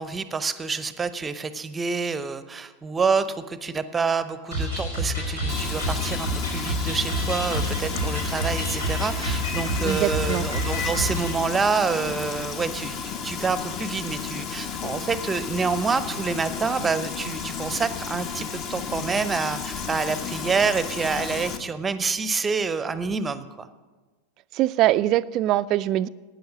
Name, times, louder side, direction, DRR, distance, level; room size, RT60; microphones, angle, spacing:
voice 1, 0.0-23.7, right 5 dB, 15° right, 13 dB, 0.7 m, -27 dB
sound 1, 4.5-11.3, equal, 80° left, 4.0 m, -28 dB
Frying (food), 5.5-21.6, left 6 dB, 40° left, 1.1 m, -33 dB
voice 2, 9.8-10.5 24.5-26.1, right 14 dB, 40° right, 17 dB, 0.3 m, -22 dB
12.5 x 9.1 x 6.6 m, 1.3 s
figure-of-eight pair, 85°, 0 cm